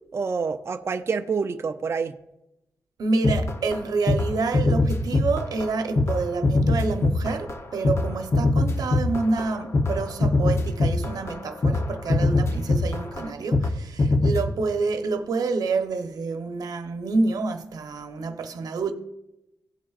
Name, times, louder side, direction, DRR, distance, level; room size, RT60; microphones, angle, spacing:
voice 1, 0.1-2.1, right 5 dB, 40° right, 0.5 m, -27 dB
voice 2, 3.0-18.9, right 3 dB, 70° right, 0.9 m, -28 dB
sound 1, 3.2-3.8 4.1-4.3 4.5-5.7 6.0-13.7 14.0-14.4, left 2 dB, 45° left, 0.9 m, -22 dB
17.0 x 7.4 x 2.5 m
wide cardioid pair, 115°, 7 cm